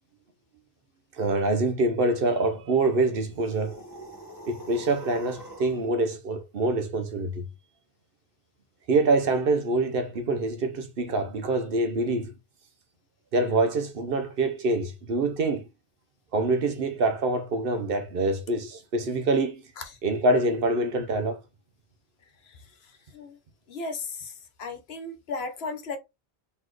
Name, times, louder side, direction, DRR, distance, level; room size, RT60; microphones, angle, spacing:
voice 1, 1.2-3.8 4.5-7.4 8.9-12.3 13.3-15.7 16.3-19.6 20.0-21.4, right 2 dB, 60° right, 0.9 m, -25 dB
sound 1, 3.3-5.9, equal, 20° left, 1.4 m, -44 dB
voice 2, 23.7-24.3 24.6-26.0, left 3 dB, 70° left, 1.1 m, -35 dB
4.1 x 3.1 x 3.1 m
omnidirectional pair, 1.1 m